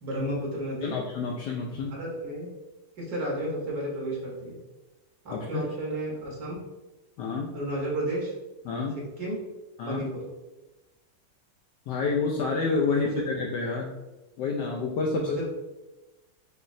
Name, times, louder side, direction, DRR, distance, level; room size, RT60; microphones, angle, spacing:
voice 1, 0.0-0.9 1.7-2.5 3.0-4.6 5.2-6.6 7.5-8.3 9.2-9.4 9.8-10.2 12.9-13.0 15.1-15.5, right 1 dB, 55° right, -4 dB, 1.4 m, -32 dB
voice 2, 0.8-1.9 5.3-5.7 7.2-7.5 8.6-9.0 9.8-10.1 11.9-13.9 14.4-15.3, left 4 dB, 75° left, -1 dB, 1.2 m, -28 dB
6.2 x 2.9 x 2.6 m, 1.1 s
omnidirectional pair, 2.0 m